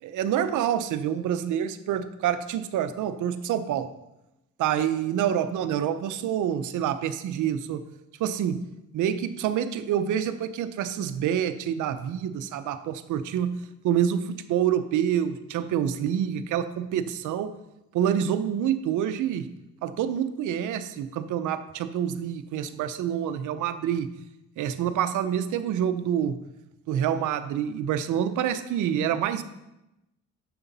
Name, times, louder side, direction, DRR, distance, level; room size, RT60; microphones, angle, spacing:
voice 1, 0.0-3.9 4.6-7.8 8.2-8.6 8.9-17.5 17.9-19.5 19.8-24.1 24.6-26.4 26.9-29.4, right 9 dB, 80° right, 11 dB, 0.7 m, -27 dB
9.5 x 6.9 x 4.1 m, 0.92 s
cardioid pair, 90°, 30 cm